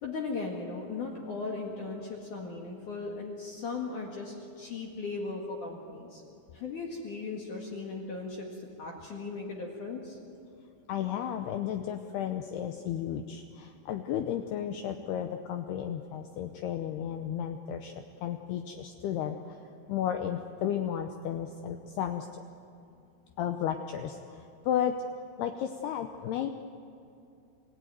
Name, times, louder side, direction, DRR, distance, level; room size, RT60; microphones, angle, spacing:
voice 1, 0.0-6.2 6.5-10.2, left 3 dB, 55° left, 0 dB, 2.7 m, -37 dB
voice 2, 10.9-17.9 18.2-19.4 19.9-22.4 23.4-25.0 25.4-26.5, left 10 dB, 80° left, 6 dB, 2.4 m, -33 dB
27.5 x 16.5 x 9.3 m, 2.7 s
omnidirectional pair, 5.5 m